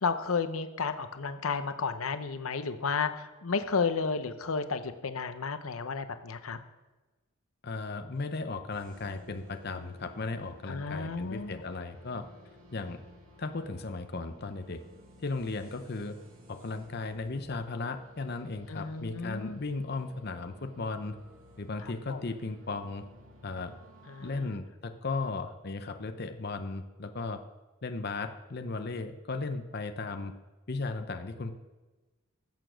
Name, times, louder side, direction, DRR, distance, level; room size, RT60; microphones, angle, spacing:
voice 1, 0.0-6.6 10.7-11.6 18.7-19.6 21.8-22.2 24.1-24.6, left 5 dB, 85° left, 10 dB, 0.7 m, -32 dB
voice 2, 7.6-12.2 12.7-13.0 13.4-14.8 15.2-16.2 16.5-21.1 21.6-23.0 23.4-23.7 24.2-27.4 27.8-30.3 30.7-31.5, left 3 dB, 50° left, 7 dB, 0.7 m, -36 dB
sound 1, 8.7-24.4, equal, 80° right, 2.7 m, -55 dB
15.0 x 7.0 x 6.3 m, 1.2 s
head